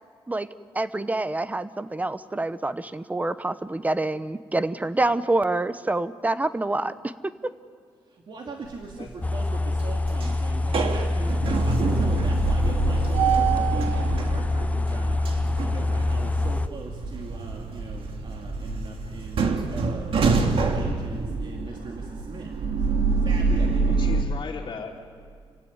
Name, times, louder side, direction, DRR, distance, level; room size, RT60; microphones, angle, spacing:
voice 1, 0.7-7.5, right 2 dB, 15° right, 13 dB, 1.0 m, -27 dB
voice 2, 8.1-22.5 22.9-24.0, right 3 dB, 55° right, 0 dB, 2.7 m, -40 dB
sound 1, 8.7-9.2 9.6-24.2, right 4 dB, 70° right, 2.2 m, -26 dB
sound 2, 9.2-16.7, left 2 dB, 15° left, 0.5 m, -25 dB
voice 3, 23.9-25.0, left 5 dB, 55° left, -6 dB, 3.0 m, -37 dB
29.0 x 16.0 x 9.6 m, 2.2 s
cardioid pair, 100°, 10 cm